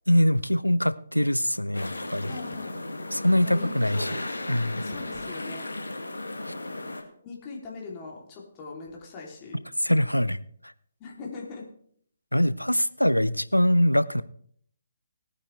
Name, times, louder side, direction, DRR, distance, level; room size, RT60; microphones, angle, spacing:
voice 1, 0.1-2.4 3.1-4.2 4.5-4.8 6.5-6.6 9.8-10.4 12.3-14.2, equal, 90° left, 0.6 m, -23 dB
sound 1, 1.7-7.0, left 2 dB, 70° left, 2.1 m, -35 dB
voice 2, 2.3-2.8 3.4-5.7 7.2-9.6 11.0-11.7, left 4 dB, 25° left, 3.1 m, -41 dB
19.0 x 9.8 x 3.3 m
figure-of-eight pair, 140°, 0 cm